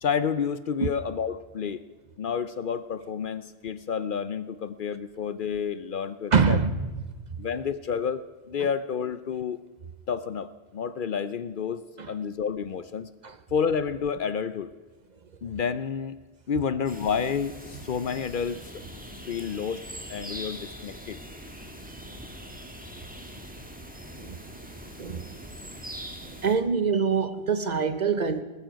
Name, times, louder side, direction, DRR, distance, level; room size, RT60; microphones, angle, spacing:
voice 1, 0.0-1.8 2.2-6.6 7.4-9.6 10.1-13.1 13.5-14.7 15.4-16.2 16.5-18.7 19.3-19.8 20.1-21.2, left 6 dB, 55° left, 0.7 m, -30 dB
voice 2, 6.3-6.9 8.6-8.7 12.0-12.1 13.2-13.4 24.2-24.4 25.0-25.3 26.4-28.4, right 5 dB, 45° right, 0.8 m, -25 dB
sound 1, 16.9-26.5, equal, 10° right, 1.6 m, -42 dB
19.0 x 14.0 x 5.1 m
omnidirectional pair, 1.1 m